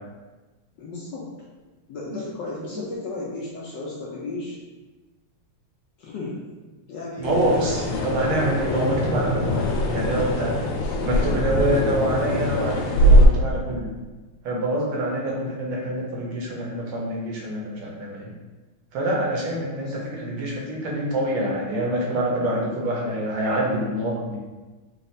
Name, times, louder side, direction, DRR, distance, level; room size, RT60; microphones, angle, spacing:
voice 1, 0.8-1.3 1.9-4.6 6.0-6.4 6.9-8.2 10.8-11.1 19.7-19.9, left 2 dB, 70° left, -5 dB, 1.1 m, -34 dB
sound 1, 7.2-13.3, equal, 90° left, 1.6 m, -21 dB
voice 2, 7.2-10.5 11.0-13.9 14.4-18.3 18.9-24.4, right 1 dB, 70° right, -2 dB, 1.5 m, -26 dB
4.2 x 2.3 x 4.0 m, 1.2 s
omnidirectional pair, 2.4 m